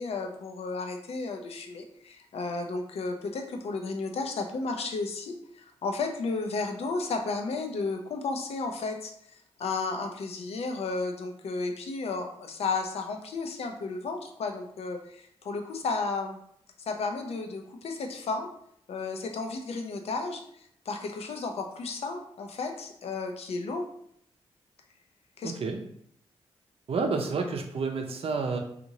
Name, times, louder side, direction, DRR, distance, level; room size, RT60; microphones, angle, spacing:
voice 1, 0.0-9.1 9.6-16.4 16.9-18.5 18.9-23.9 25.4-25.5, left 3 dB, 65° left, 5 dB, 0.5 m, -33 dB
voice 2, 25.4-25.8 26.9-28.6, right 4 dB, 60° right, 4 dB, 0.6 m, -29 dB
2.8 x 2.5 x 2.7 m, 0.69 s
supercardioid pair, 50°, 11 cm